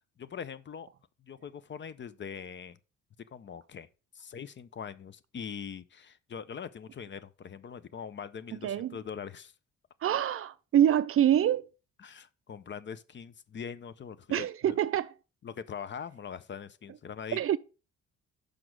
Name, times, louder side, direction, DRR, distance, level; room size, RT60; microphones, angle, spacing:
voice 1, 0.2-0.9 1.2-2.8 3.3-3.9 4.1-9.5 12.0-14.8 15.4-17.6, left 7 dB, 40° left, 0.6 m, -42 dB
voice 2, 8.6-9.0 10.0-11.7 14.3-15.1 17.3-17.6, right 10 dB, 50° right, 0.4 m, -25 dB
6.0 x 5.0 x 4.6 m
cardioid pair, 90°, 30 cm